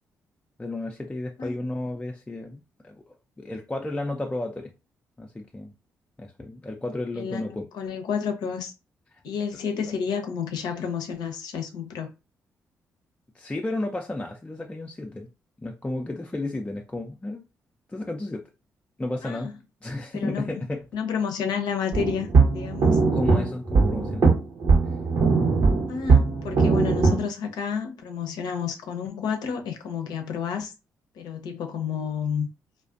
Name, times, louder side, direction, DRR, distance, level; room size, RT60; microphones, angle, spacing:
voice 1, 0.6-2.6 2.8-3.0 3.4-4.7 5.2-5.7 6.2-7.6 13.3-15.3 15.6-17.4 17.9-18.4 19.0-19.6 19.8-20.8 23.1-24.3, left 2 dB, 15° left, 0.4 m, -32 dB
voice 2, 7.2-8.7 9.2-12.1 19.2-19.5 20.1-20.6 20.9-23.0 25.9-30.7 31.1-32.5, left 7 dB, 70° left, 0.5 m, -30 dB
sound 1, 21.9-27.2, right 4 dB, 60° right, 0.8 m, -20 dB
2.4 x 2.2 x 2.4 m
hypercardioid pair, 45°, 7 cm